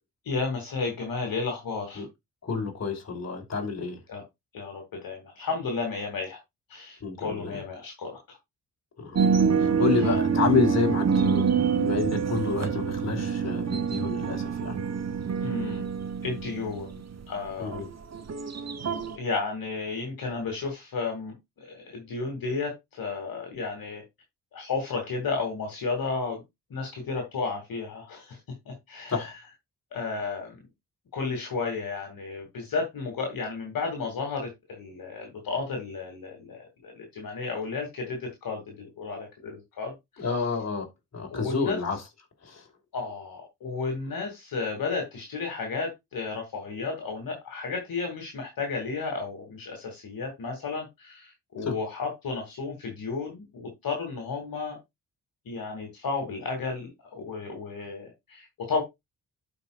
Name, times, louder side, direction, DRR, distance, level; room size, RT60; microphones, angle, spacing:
voice 1, 0.2-2.1 4.1-4.2 4.5-6.4 6.7-8.4 15.4-15.9 16.2-17.0 17.3-17.9 19.1-24.0 24.5-26.4 26.7-28.4 28.7-29.3 29.9-30.6 31.1-40.2 41.3-41.8 42.9-54.8 55.5-58.8, left 4 dB, 60° left, 2.4 m, -33 dB
voice 2, 2.4-4.0 7.0-7.6 9.0-9.3 9.6-11.5 11.8-14.8 17.6-17.9 29.1-29.3 40.2-40.9 41.1-42.0 42.4-42.6 51.6-51.7, left 5 dB, 45° left, 3.0 m, -29 dB
sound 1, 9.2-19.2, right 6 dB, 45° right, 1.3 m, -26 dB
12.0 x 5.1 x 2.3 m
hypercardioid pair, 45°, 38 cm